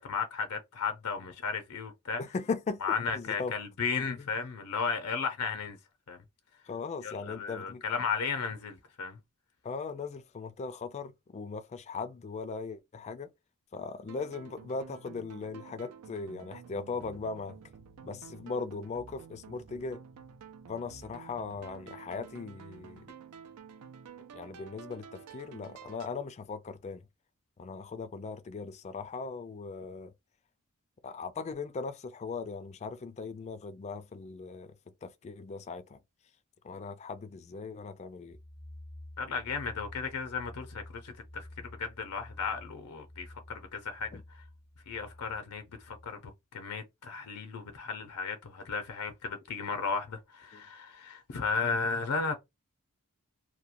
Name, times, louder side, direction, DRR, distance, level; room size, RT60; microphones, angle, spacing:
voice 1, 0.0-2.2 2.8-5.8 6.1-6.2 7.0-9.2 39.2-41.5 41.8-44.1 44.9-52.3, left 5 dB, 85° left, 0.6 m, -34 dB
voice 2, 2.2-3.5 4.2-4.3 6.7-7.8 9.6-13.3 13.7-17.6 18.0-20.0 20.7-23.1 24.3-27.1 27.6-30.1 31.0-34.7 35.0-36.0 36.6-38.4 44.1-44.2 50.5-50.6, left 4 dB, 30° left, 0.3 m, -39 dB
sound 1, 14.1-26.1, right 6 dB, 90° right, 0.4 m, -50 dB
sound 2, 38.3-46.1, left 1 dB, 35° right, 0.6 m, -50 dB
2.9 x 2.1 x 2.5 m
head